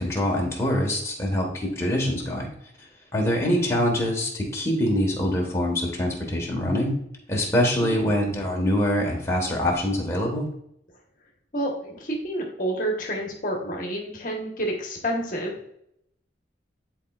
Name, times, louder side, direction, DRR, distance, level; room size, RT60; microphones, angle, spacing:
voice 1, 0.0-2.5 2.8-6.9 7.3-10.5, left 1 dB, 15° left, -1 dB, 1.4 m, -24 dB
voice 2, 11.5-15.7, right 1 dB, 45° left, 0 dB, 1.3 m, -29 dB
10.5 x 4.3 x 2.4 m, 0.74 s
head